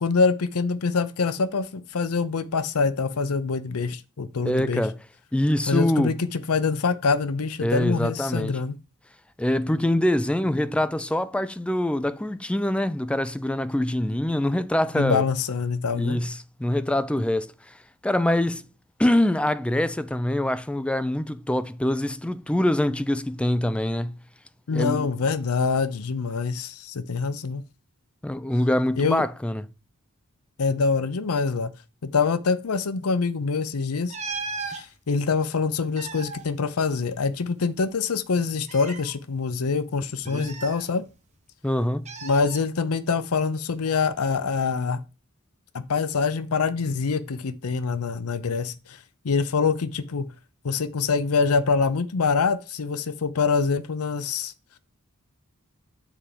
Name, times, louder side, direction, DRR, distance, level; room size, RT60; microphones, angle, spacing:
voice 1, 0.0-4.9 5.7-8.8 14.9-16.2 24.7-27.6 29.0-29.2 30.6-31.7 32.0-34.1 34.7-41.0 42.2-45.0 45.7-49.0 49.2-50.3 50.6-54.5, left 4 dB, 75° left, 0.6 m, -25 dB
voice 2, 4.5-5.0 5.3-6.1 7.6-8.6 9.4-15.2 16.0-17.5 18.0-18.7 19.0-24.1 24.7-25.1 28.2-29.6 40.3-40.5 41.6-42.0, left 1 dB, 5° left, 0.4 m, -24 dB
sound 1, 34.1-34.8 35.7-37.4 37.7-37.8 38.6-39.1 40.3-41.3 42.1-42.6 43.9-44.1, right 4 dB, 30° right, 1.4 m, -37 dB
7.4 x 4.4 x 5.0 m
head